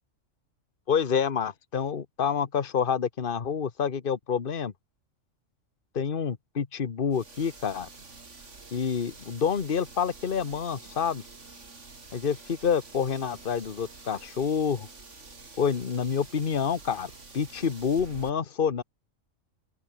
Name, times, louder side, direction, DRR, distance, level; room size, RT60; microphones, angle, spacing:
voice 1, 0.9-4.7 5.9-7.9 8.7-11.2 12.1-14.9 15.6-18.8, left 7 dB, 45° left, 1.4 m, -28 dB
sound 1, 7.1-18.3, right 3 dB, 65° right, 3.3 m, -48 dB
open air
omnidirectional pair, 1.3 m